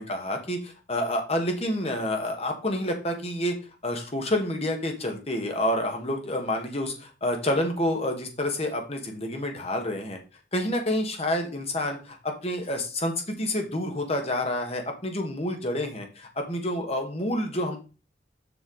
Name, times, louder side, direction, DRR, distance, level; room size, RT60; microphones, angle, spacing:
voice 1, 0.0-3.5 3.8-10.2 10.5-17.8, left 1 dB, 35° left, 4 dB, 1.5 m, -28 dB
7.2 x 5.7 x 3.9 m, 0.33 s
head